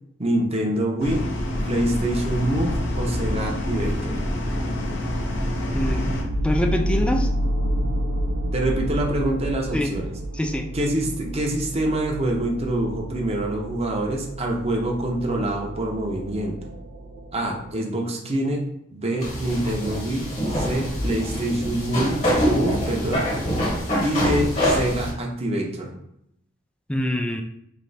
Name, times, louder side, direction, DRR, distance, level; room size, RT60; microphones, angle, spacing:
voice 1, 0.2-1.2 1.7-4.2 7.8-7.9 8.5-10.1 10.7-16.6 17.3-18.6 18.9-20.2 20.5-22.2 22.5-23.3 24.0-25.9, right 1 dB, 30° right, 1 dB, 0.7 m, -25 dB
sound 1, 1.0-6.2, left 1 dB, 60° left, 0.7 m, -26 dB
sound 2, 5.8-17.7, equal, 65° right, 0.5 m, -29 dB
voice 2, 6.4-7.3 9.7-9.9 10.4-10.7 26.9-27.4, left 1 dB, 5° left, 5 dB, 0.3 m, -24 dB
sound 3, 19.2-25.1, equal, 35° left, 1.1 m, -25 dB
3.2 x 2.8 x 4.0 m, 0.76 s
head